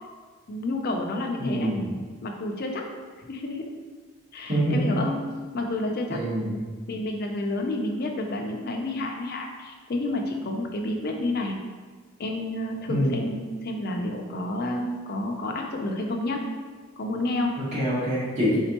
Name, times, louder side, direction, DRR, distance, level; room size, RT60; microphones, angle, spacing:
voice 1, 0.5-1.7 2.2-2.9 3.2-3.7 4.3-5.2 5.5-6.3 6.9-11.6 12.2-16.4 17.0-17.6, left 1 dB, 45° left, 2 dB, 0.5 m, -30 dB
voice 2, 1.4-1.9 4.5-4.8 6.1-6.6 12.9-13.2 17.6-18.6, equal, 35° right, -7 dB, 1.3 m, -25 dB
4.3 x 3.6 x 2.9 m, 1.5 s
head